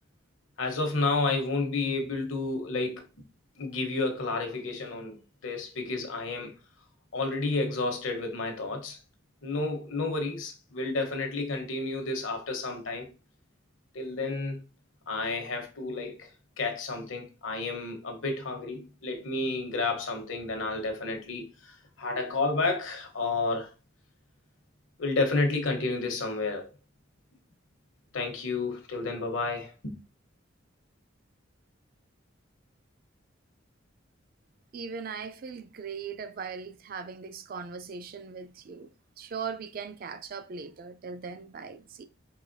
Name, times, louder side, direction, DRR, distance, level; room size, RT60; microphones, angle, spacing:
voice 1, 0.6-3.0 3.6-6.5 7.1-9.0 9.4-13.1 13.9-14.6 15.1-16.3 16.6-23.7 25.0-26.7 28.1-30.0, left 3 dB, 75° left, 1.0 m, -31 dB
voice 2, 34.7-38.9 39.2-42.0, right 5 dB, 45° right, 0.4 m, -39 dB
4.8 x 3.1 x 2.6 m
head